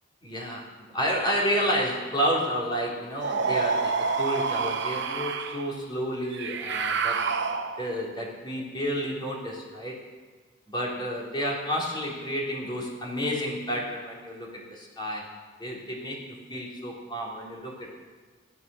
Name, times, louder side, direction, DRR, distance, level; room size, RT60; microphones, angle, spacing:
voice 1, 0.2-7.3 7.8-10.1 10.7-15.3 15.6-17.9, equal, 25° left, -3 dB, 3.4 m, -30 dB
sound 1, 3.2-5.7 6.3-8.0, right 5 dB, 65° right, 1.0 m, -28 dB
15.5 x 11.0 x 6.9 m, 1.4 s
head